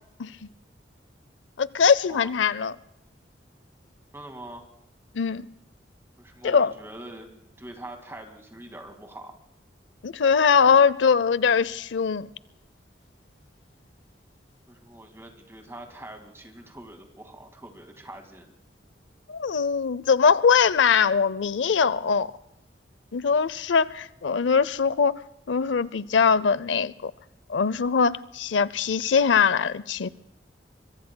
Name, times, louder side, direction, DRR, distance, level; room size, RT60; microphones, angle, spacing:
voice 1, 1.6-2.7 5.1-5.5 6.4-6.7 10.0-12.3 19.3-22.3 23.1-25.2 25.5-27.1 27.5-30.1, left 6 dB, 85° left, 0.5 m, -22 dB
voice 2, 4.1-4.6 6.2-9.4 14.7-18.5, right 1 dB, 15° right, 2.0 m, -43 dB
25.0 x 23.5 x 2.2 m
head